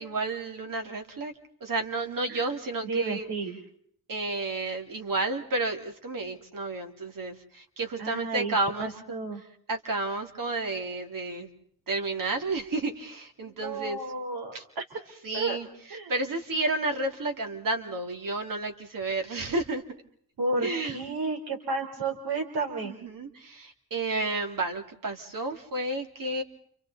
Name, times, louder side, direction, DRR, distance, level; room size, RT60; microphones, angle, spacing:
voice 1, 0.0-1.3 1.6-3.3 4.1-8.9 9.7-11.5 11.9-14.0 14.5-14.6 15.2-19.8 20.6-21.0 22.8-26.4, right 2 dB, 60° right, 5 dB, 2.7 m, -31 dB
voice 2, 2.8-3.6 8.0-9.4 13.4-14.8 15.3-15.6 15.9-16.1 20.4-22.9, right 3 dB, 75° right, 3 dB, 4.2 m, -32 dB
29.5 x 28.0 x 4.1 m, 0.63 s
wide cardioid pair, 175°, 38 cm